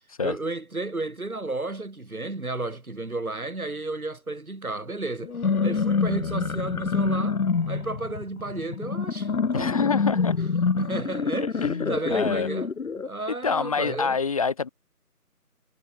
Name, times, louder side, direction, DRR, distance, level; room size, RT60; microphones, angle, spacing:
voice 1, 0.2-5.4 5.6-7.4 7.7-9.9 10.8-14.2, right 2 dB, 65° right, 7.5 m, -33 dB
sound 1, 5.2-13.1, left 5 dB, 65° left, 0.9 m, -26 dB
voice 2, 9.5-10.4 11.6-12.5 13.4-14.7, left 5 dB, 20° left, 3.1 m, -26 dB
figure-of-eight pair, 165°, 46 cm